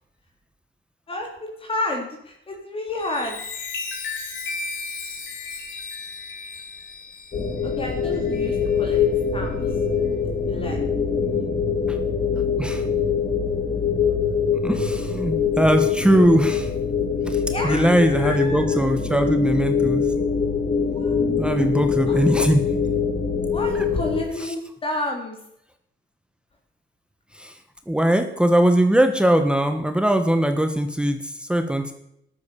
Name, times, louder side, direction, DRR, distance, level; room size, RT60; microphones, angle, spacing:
voice 1, 1.1-3.4 7.6-9.0 9.3-9.6 10.2-10.8 17.4-18.8 20.9-21.2 22.1-22.2 23.5-25.4, left 2 dB, 25° left, 1 dB, 3.5 m, -30 dB
Chime, 2.9-8.9 9.4-9.7, left 4 dB, 75° left, 5.4 m, -35 dB
sound 1, 7.3-24.2, left 6 dB, 45° left, 3.9 m, -23 dB
voice 2, 14.6-16.7 17.3-20.2 21.4-22.7 23.7-23.9 24.4-24.5 27.3-27.6 27.9-31.9, right 1 dB, 5° right, 7 dB, 1.3 m, -21 dB
13.5 x 13.0 x 6.9 m, 0.77 s
cardioid pair, 150°, 20 cm